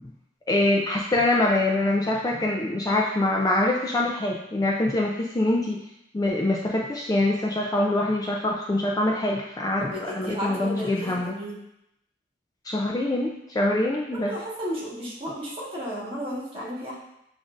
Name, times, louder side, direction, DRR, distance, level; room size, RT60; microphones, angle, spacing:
voice 1, 0.5-5.8 6.1-11.4 12.6-14.3, left 1 dB, 20° left, -1 dB, 0.3 m, -24 dB
voice 2, 9.8-11.6 14.1-17.0, equal, 30° right, -6 dB, 1.3 m, -33 dB
6.9 x 2.6 x 2.4 m, 0.80 s
head